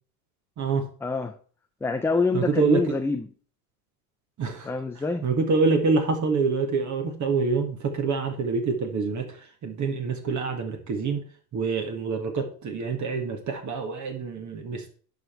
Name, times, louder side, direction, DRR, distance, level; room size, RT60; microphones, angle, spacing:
voice 1, 1.0-1.3 1.8-3.3 4.6-5.3, left 3 dB, 5° left, 5 dB, 0.4 m, -26 dB
voice 2, 2.3-3.0 4.4-4.7 5.2-9.3 9.6-11.2 11.5-15.0, right 4 dB, 35° right, 5 dB, 1.8 m, -26 dB
10.5 x 5.1 x 4.5 m, 0.43 s
hypercardioid pair, 95°, 48 cm